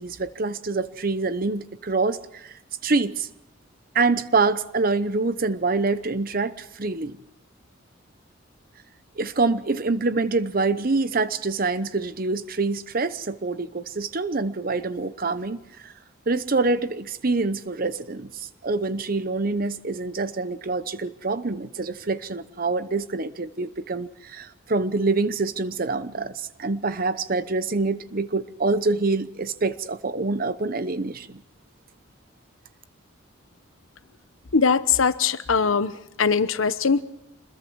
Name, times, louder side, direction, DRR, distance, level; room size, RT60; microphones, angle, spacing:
voice 1, 0.0-2.5 2.8-3.3 3.9-7.2 9.2-15.9 16.3-31.4, right 3 dB, 45° right, 13 dB, 0.9 m, -26 dB
voice 2, 34.5-35.9 36.2-37.0, left 5 dB, 90° left, 13 dB, 1.0 m, -21 dB
27.0 x 21.5 x 4.7 m, 0.85 s
head